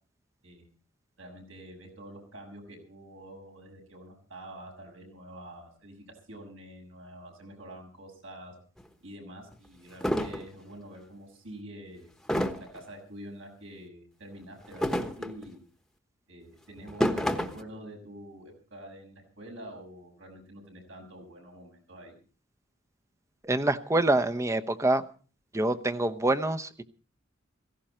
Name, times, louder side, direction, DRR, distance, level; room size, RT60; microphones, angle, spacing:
voice 1, 1.2-8.5 9.0-12.1 12.7-15.6 16.3-22.2, right 1 dB, 75° right, 6.7 m, -47 dB
sound 1, 8.8-8.9 9.5-9.6 10.0-10.5 12.3-12.8 14.6-15.5 16.8-17.6, equal, ahead, 1.2 m, -29 dB
voice 2, 23.4-25.0 25.5-26.8, right 2 dB, 15° right, 0.8 m, -26 dB
17.0 x 16.0 x 4.3 m
head